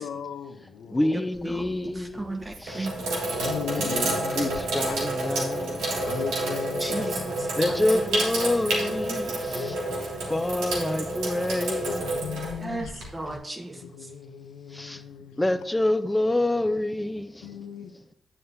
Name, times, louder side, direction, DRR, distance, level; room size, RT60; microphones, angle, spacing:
voice 1, 0.0-1.2 3.4-4.6 4.9-5.0 6.0-7.8 9.5-10.5 11.8-13.1 13.8-15.4 17.4-17.9, left 8 dB, 85° left, 0.5 m, -37 dB
voice 2, 0.9-2.2 2.6-2.9 3.7-6.2 7.5-9.8 10.3-12.1 14.7-15.0 15.4-17.5, left 1 dB, 15° left, 0.6 m, -27 dB
voice 3, 1.4-3.0 3.4-3.5 6.8-8.2 12.6-14.1, right 2 dB, 25° right, 1.2 m, -36 dB
Sink (filling or washing), 1.4-1.8 2.4-13.3, right 2 dB, 90° right, 1.6 m, -29 dB
9.6 x 7.5 x 2.7 m
supercardioid pair, 50°, 0 cm